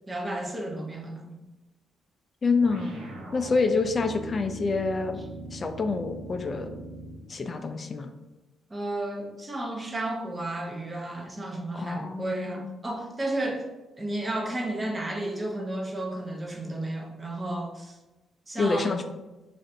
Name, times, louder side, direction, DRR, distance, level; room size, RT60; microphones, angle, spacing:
voice 1, 0.1-1.4 8.7-13.7 14.0-18.0 18.5-18.9, right 1 dB, 25° right, 0 dB, 0.7 m, -32 dB
voice 2, 2.4-3.0 3.3-5.2 5.5-6.7 7.3-8.1 11.7-12.8 18.6-19.0, left 4 dB, 45° left, 7 dB, 0.3 m, -27 dB
sound 1, 2.6-7.3, right 1 dB, 75° right, 0.7 m, -41 dB
3.2 x 2.5 x 2.6 m, 1.1 s
supercardioid pair, 60°, 0 cm